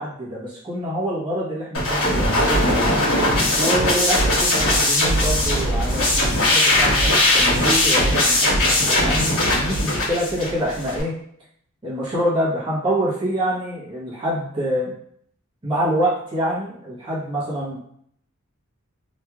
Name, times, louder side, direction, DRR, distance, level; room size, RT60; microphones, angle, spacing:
voice 1, 0.0-3.0 3.5-11.1 11.8-14.9 15.6-17.8, equal, 25° right, -9 dB, 1.1 m, -26 dB
sound 1, 1.7-11.0, left 1 dB, 70° left, 1.2 m, -19 dB
3.2 x 3.0 x 2.3 m, 0.66 s
head